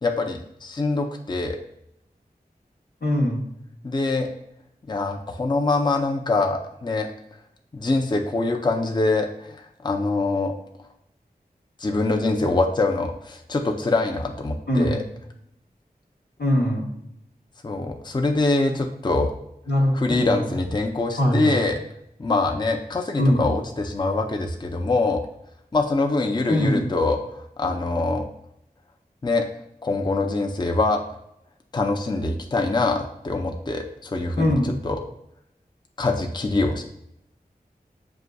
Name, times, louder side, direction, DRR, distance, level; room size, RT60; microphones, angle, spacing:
voice 1, 0.0-1.6 3.8-4.3 4.9-7.1 7.7-10.5 11.8-15.0 17.6-19.3 19.9-21.8 22.2-25.2 25.7-28.3 29.2-29.5 29.8-31.0 31.7-35.0 36.0-36.8, left 3 dB, 25° left, 3 dB, 0.4 m, -24 dB
voice 2, 3.0-3.4 14.7-15.0 16.4-16.9 19.7-20.4 21.2-21.5 23.2-23.4 26.5-26.8 34.4-34.7, equal, 85° left, -2 dB, 1.0 m, -21 dB
6.4 x 2.5 x 2.2 m, 0.79 s
wide cardioid pair, 40°, 16 cm